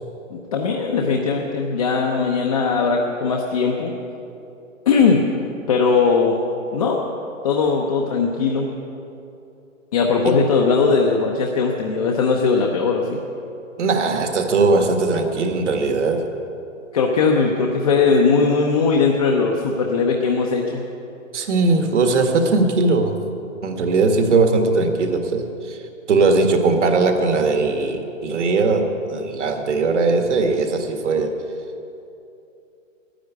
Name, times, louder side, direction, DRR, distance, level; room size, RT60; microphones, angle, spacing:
voice 1, 0.3-3.9 4.9-5.3 5.7-6.4 6.7-7.1 7.4-8.7 9.9-13.2 16.9-20.8, left 4 dB, 30° left, 0 dB, 0.8 m, -19 dB
voice 2, 13.8-16.3 21.3-23.1 23.6-25.8 26.1-31.4, right 3 dB, 60° right, 5 dB, 1.9 m, -19 dB
11.5 x 10.0 x 9.5 m, 2.7 s
hypercardioid pair, 165°, 40 cm